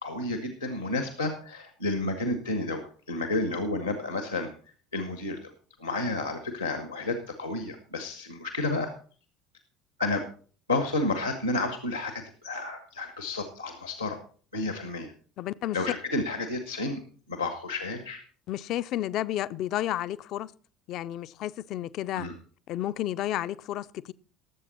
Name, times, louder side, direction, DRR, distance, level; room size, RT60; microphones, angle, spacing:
voice 1, 0.0-4.5 4.9-5.5 5.8-8.9 10.0-10.2 10.7-14.2 14.5-15.1 15.7-17.0 17.3-18.2 22.2-22.3, left 2 dB, 90° left, 1.4 m, -31 dB
voice 2, 15.4-15.8 18.5-20.5 20.9-22.3 22.7-24.1, left 13 dB, 50° left, 0.5 m, -31 dB
18.5 x 7.7 x 4.2 m
figure-of-eight pair, 60°, 0 cm